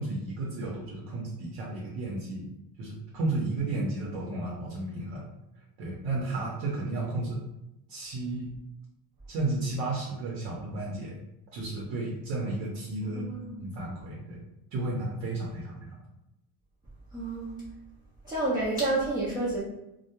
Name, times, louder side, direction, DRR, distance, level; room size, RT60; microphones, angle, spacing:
voice 1, 0.0-2.5 2.8-5.3 5.8-7.4 7.9-8.5 9.3-11.1 11.5-13.2 13.6-14.4 14.7-16.0, right 2 dB, 80° right, -3 dB, 0.8 m, -33 dB
voice 2, 13.1-13.6 17.1-17.6 18.2-19.6, right 2 dB, 10° right, -8 dB, 0.3 m, -29 dB
2.2 x 2.1 x 2.9 m, 0.88 s
cardioid pair, 160°, 42 cm